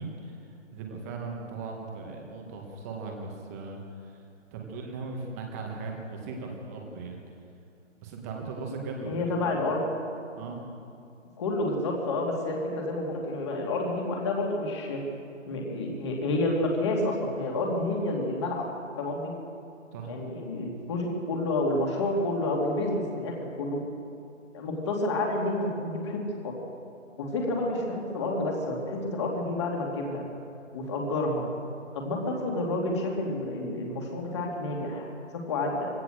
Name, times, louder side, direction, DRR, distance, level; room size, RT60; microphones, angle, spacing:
voice 1, 0.0-4.2 4.5-7.2 8.0-9.7 10.4-10.6 19.9-20.1, right 3 dB, 10° right, 1 dB, 1.8 m, -38 dB
voice 2, 9.1-9.8 11.4-15.0 15.5-18.7 19.0-19.3 20.1-23.8 24.5-26.6 27.2-30.2 30.7-31.5 31.9-35.9, left 2 dB, 20° left, 0 dB, 2.7 m, -29 dB
23.0 x 17.5 x 6.6 m, 2.5 s
figure-of-eight pair, 160°, 38 cm